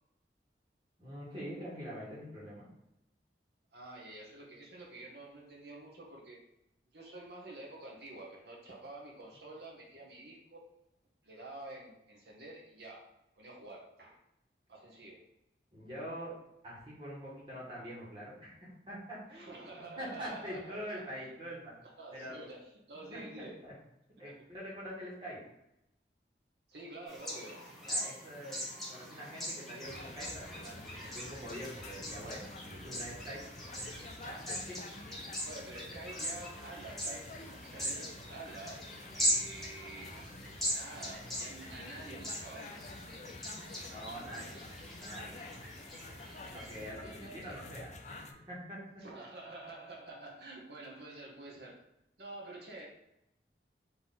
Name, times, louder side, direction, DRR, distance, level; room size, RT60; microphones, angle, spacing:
voice 1, 1.0-2.7 15.7-16.3 16.6-21.7 22.1-22.3 23.1-23.7 24.2-25.4 27.8-28.6 28.9-33.4 33.8-34.8 43.8-44.6 44.9-45.4 46.5-48.8, equal, 30° right, -7 dB, 1.6 m, -45 dB
voice 2, 3.7-6.4 6.9-10.7 11.2-14.2 14.7-15.2 19.3-21.3 22.0-23.6 24.2-24.3 26.7-27.7 35.4-40.1 40.7-42.8 47.0-47.7 49.0-51.8 52.2-52.9, right 2 dB, 70° right, -1 dB, 0.9 m, -48 dB
sound 1, 27.1-46.9, equal, ahead, 0.9 m, -41 dB
sound 2, 29.8-48.3, left 2 dB, 40° left, 0.4 m, -49 dB
3.9 x 2.9 x 3.9 m, 0.86 s
head